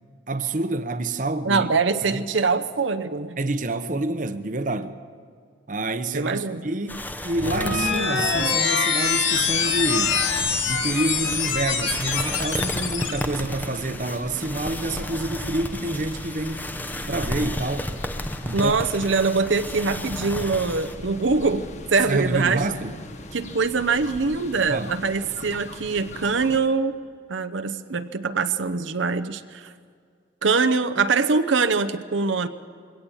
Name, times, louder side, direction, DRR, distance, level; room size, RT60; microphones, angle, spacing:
voice 1, 0.3-1.7 2.0-2.2 3.4-4.9 5.7-10.2 10.7-16.6 17.1-17.9 18.4-18.7 22.1-22.9 24.7-25.0, right 2 dB, 45° right, 0.8 m, -28 dB
voice 2, 1.4-3.4 6.1-6.6 18.5-21.7 21.9-22.6 23.3-27.0 27.3-29.7 30.4-32.5, right 4 dB, 85° right, 0.8 m, -23 dB
sound 1, 6.9-21.0, left 1 dB, 10° left, 0.7 m, -34 dB
sound 2, 7.3-13.2, left 5 dB, 85° left, 2.3 m, -24 dB
sound 3, 9.3-26.6, left 1 dB, 35° left, 1.2 m, -39 dB
22.0 x 17.0 x 7.1 m
head